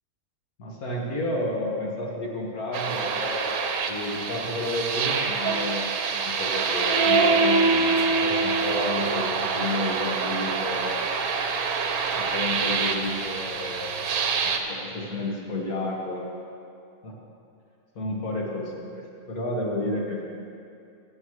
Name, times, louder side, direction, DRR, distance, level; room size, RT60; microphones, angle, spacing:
voice 1, 0.6-3.5 3.8-11.0 12.1-16.2 17.0-17.2 18.0-20.2, left 1 dB, 80° left, -2 dB, 2.1 m, -31 dB
sound 1, 2.7-14.6, right 4 dB, 80° right, 1.2 m, -25 dB
15.0 x 8.5 x 3.2 m, 2.5 s
omnidirectional pair, 1.5 m